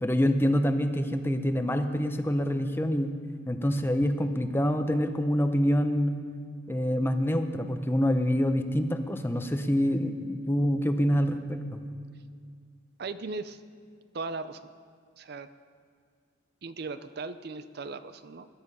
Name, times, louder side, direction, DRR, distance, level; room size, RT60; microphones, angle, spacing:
voice 1, 0.0-3.1 3.5-6.2 6.7-11.8, equal, 10° left, 7 dB, 0.7 m, -26 dB
voice 2, 13.0-13.6 14.1-14.7 15.2-15.5 16.6-18.5, right 3 dB, 55° right, 12 dB, 0.5 m, -37 dB
20.5 x 10.5 x 5.5 m, 2.1 s
head